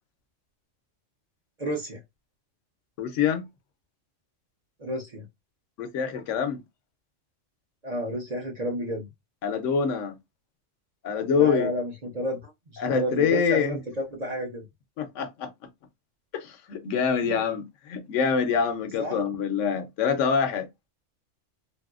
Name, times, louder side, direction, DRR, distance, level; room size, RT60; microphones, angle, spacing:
voice 1, 1.6-2.0 4.8-5.3 7.8-9.1 11.4-14.6 17.2-17.3 19.0-19.2, right 1 dB, 40° right, 0.7 m, -31 dB
voice 2, 3.0-3.4 5.8-6.6 9.4-10.2 11.0-11.7 12.8-13.8 15.0-15.5 16.3-20.7, left 6 dB, 75° left, 0.9 m, -25 dB
2.8 x 2.6 x 2.3 m
omnidirectional pair, 1.3 m